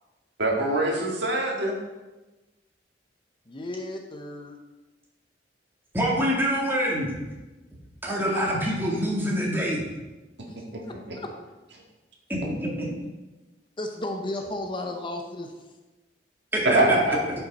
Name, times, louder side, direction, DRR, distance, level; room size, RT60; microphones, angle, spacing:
voice 1, 0.4-1.8 10.7-10.8 16.7-17.2, right 2 dB, 70° right, -1 dB, 1.8 m, -23 dB
voice 2, 3.5-4.6 10.5-10.6 11.1-11.3 13.8-15.5, left 1 dB, 30° left, 4 dB, 0.7 m, -34 dB
voice 3, 5.9-7.1 8.0-9.8 12.3-12.9 16.5-16.7, equal, 10° right, -3 dB, 2.0 m, -25 dB
11.0 x 5.7 x 4.1 m, 1.1 s
head